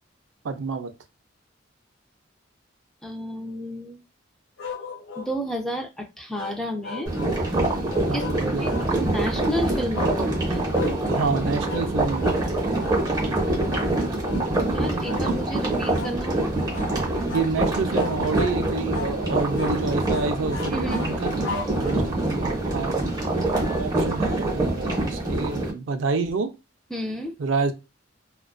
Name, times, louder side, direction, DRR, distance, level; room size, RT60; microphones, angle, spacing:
voice 1, 0.4-0.9 8.1-9.1 11.1-12.4 17.3-23.0 23.8-26.5 27.4-27.7, right 4 dB, 75° right, 8 dB, 0.4 m, -28 dB
voice 2, 3.0-4.0 5.2-7.1 8.1-10.9 14.6-16.5 20.7-21.4 26.9-27.4, equal, 5° left, 2 dB, 0.4 m, -32 dB
sound 1, 4.6-5.3 6.3-7.4 7.9-8.9 9.9-10.2 10.7-11.0 11.7-11.9 12.2-12.4 12.8-13.0 13.7-13.9 14.2-14.5 15.0-15.3 15.9-16.2 16.7-17.0 17.3-17.5 18.0-18.6 18.9-19.2 19.6-19.8 20.1-22.2, left 4 dB, 90° left, 0.6 m, -35 dB
sound 2, 7.1-25.7, right 2 dB, 20° right, 0.8 m, -25 dB
2.5 x 2.2 x 2.3 m, 0.25 s
head